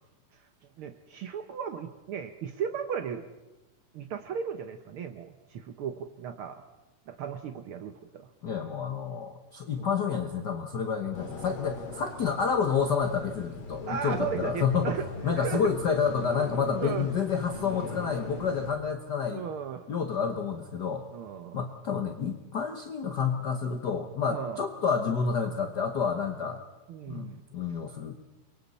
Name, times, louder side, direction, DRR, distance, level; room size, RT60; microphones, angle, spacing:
voice 1, 0.8-3.2 3.9-6.6 7.1-8.3 9.8-9.9 13.9-15.0 15.4-15.7 16.8-17.1 19.3-19.8 21.1-21.6 24.3-24.6 26.9-27.4, right 7 dB, 80° right, 8 dB, 1.2 m, -35 dB
voice 2, 8.4-14.9 15.2-19.4 19.9-21.0 21.5-26.6 27.1-28.2, left 6 dB, 65° left, 5 dB, 1.0 m, -29 dB
sound 1, 11.1-18.8, left 3 dB, 50° left, 3.1 m, -41 dB
29.0 x 23.5 x 4.2 m, 1.1 s
omnidirectional pair, 3.6 m